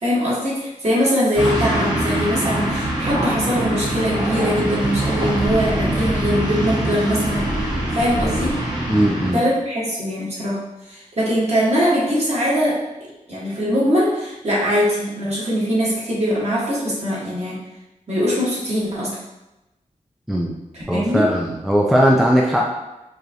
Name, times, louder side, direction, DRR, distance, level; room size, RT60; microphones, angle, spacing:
voice 1, 0.0-7.5 7.9-8.6 9.3-10.6 10.9-12.8 13.3-17.6 18.1-19.2 20.7-21.3, equal, 50° right, -7 dB, 1.5 m, -21 dB
sound 1, 1.4-9.3, right 1 dB, 35° right, 0.9 m, -23 dB
voice 2, 8.9-9.4 20.3-20.5 20.9-22.6, equal, ahead, -2 dB, 0.4 m, -18 dB
4.9 x 2.5 x 2.8 m, 0.97 s
wide cardioid pair, 100°, 14 cm